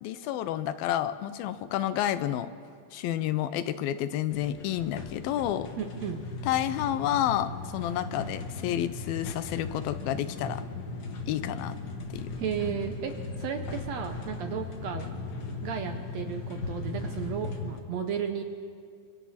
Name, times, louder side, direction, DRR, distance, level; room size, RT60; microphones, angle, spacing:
voice 1, 0.0-2.5 2.9-5.7 6.4-10.7 11.3-11.8 12.1-12.4, left 11 dB, 85° left, 13 dB, 2.6 m, -30 dB
sound 1, 4.3-17.8, left 3 dB, 65° left, 1.0 m, -37 dB
voice 2, 5.8-6.2 12.4-15.1 15.6-18.4, right 8 dB, 75° right, 6 dB, 1.6 m, -34 dB
29.5 x 25.5 x 4.3 m, 2.3 s
omnidirectional pair, 4.1 m